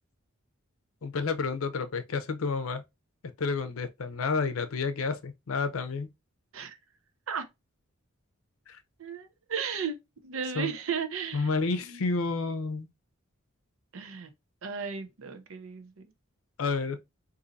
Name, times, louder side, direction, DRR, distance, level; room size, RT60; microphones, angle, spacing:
voice 1, 1.0-2.8 3.4-6.1 8.7-8.8 10.6-10.7 11.3-12.9 16.6-17.0, left 4 dB, 85° left, 0.6 m, -30 dB
voice 2, 9.0-9.9 10.2-11.5 11.8-12.0 13.9-14.3 14.6-15.9, right 6 dB, 75° right, 0.6 m, -34 dB
4.0 x 2.7 x 2.5 m
head